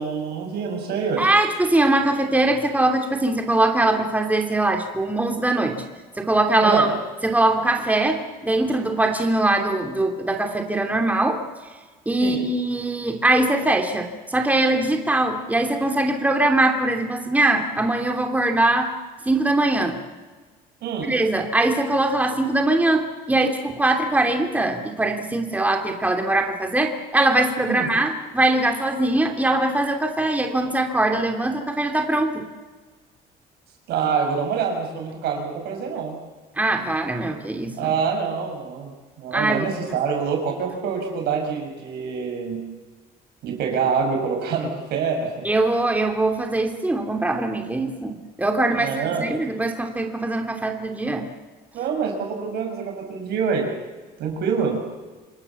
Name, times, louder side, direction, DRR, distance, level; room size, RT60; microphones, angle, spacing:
voice 1, 0.0-1.3 6.6-6.9 12.2-12.4 20.8-21.1 27.7-27.9 33.9-36.2 37.8-38.9 39.2-42.6 43.4-45.4 48.7-49.3 51.7-53.7 54.2-54.8, right 6 dB, 75° right, 2 dB, 6.5 m, -26 dB
voice 2, 1.2-5.8 6.2-6.9 7.2-11.4 12.1-18.9 19.2-20.0 21.0-32.4 36.6-37.9 39.3-39.7 45.4-51.2, right 2 dB, 10° right, 3 dB, 2.8 m, -22 dB
27.0 x 20.0 x 7.1 m, 1.3 s
cardioid pair, 110°, 17 cm